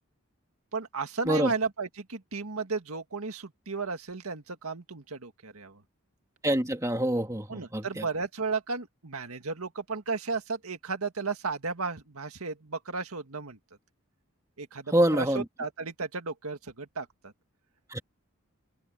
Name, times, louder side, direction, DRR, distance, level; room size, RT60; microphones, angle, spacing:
voice 1, 0.7-5.8 7.5-13.6 14.6-17.3, right 4 dB, 85° right, 1.9 m, -34 dB
voice 2, 6.4-8.0 14.9-15.4 17.9-18.0, right 1 dB, 15° right, 2.0 m, -26 dB
open air
head